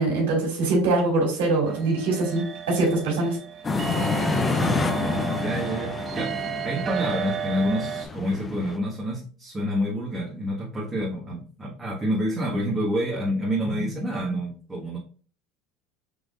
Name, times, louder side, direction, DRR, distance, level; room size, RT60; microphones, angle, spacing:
voice 1, 0.0-3.4, right 2 dB, 85° right, -1 dB, 2.4 m, -23 dB
sound 1, 1.7-8.1, right 9 dB, 40° right, 0.7 m, -33 dB
sound 2, 3.6-8.8, left 4 dB, 25° left, 0.6 m, -28 dB
voice 2, 3.9-15.0, equal, 20° right, -6 dB, 1.6 m, -28 dB
6.1 x 3.5 x 2.5 m, 0.41 s
supercardioid pair, 100°, 0 cm